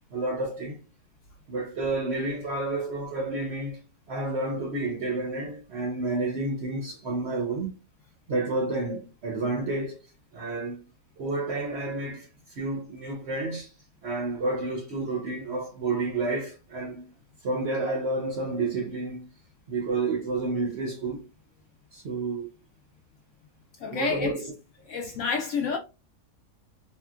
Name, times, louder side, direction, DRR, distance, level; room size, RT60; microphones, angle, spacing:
voice 1, 0.1-0.8 1.5-3.8 4.1-7.7 8.3-10.0 10.3-10.8 11.2-13.7 14.0-17.1 17.4-19.2 19.7-21.2 21.9-22.5 23.9-24.5, right 2 dB, 60° right, 0.7 m, -30 dB
voice 2, 23.8-24.5 24.9-25.8, left 5 dB, 70° left, 0.7 m, -29 dB
3.6 x 2.3 x 2.3 m
omnidirectional pair, 1.6 m